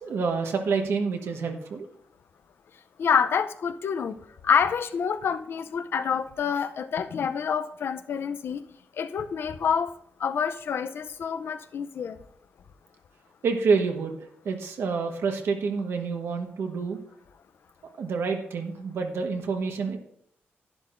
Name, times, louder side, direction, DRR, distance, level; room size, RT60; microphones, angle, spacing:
voice 1, 0.0-1.9 13.4-17.0 18.0-20.0, right 5 dB, 80° right, 4 dB, 1.3 m, -28 dB
voice 2, 3.0-4.2 4.4-8.6 9.0-9.9 10.2-12.2, left 7 dB, 65° left, 11 dB, 0.6 m, -27 dB
11.5 x 10.5 x 2.6 m, 0.68 s
wide cardioid pair, 140°, 4 cm